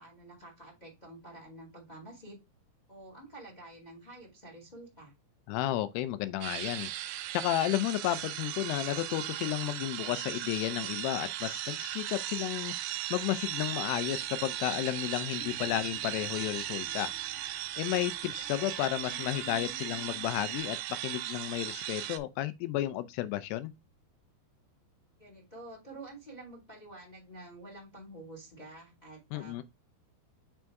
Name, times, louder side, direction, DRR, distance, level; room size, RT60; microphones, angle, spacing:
voice 1, 0.0-2.4 2.9-5.1 25.2-29.6, right 2 dB, 20° left, 1.2 m, -49 dB
voice 2, 5.5-6.9 7.3-17.1 17.5-20.8 21.0-23.7 29.3-29.6, left 14 dB, 85° left, 2.7 m, -32 dB
sound 1, 6.4-22.2, right 13 dB, 80° right, 2.2 m, -37 dB
sound 2, 13.8-20.6, left 9 dB, 55° left, 0.8 m, -53 dB
6.4 x 3.5 x 4.5 m
omnidirectional pair, 4.7 m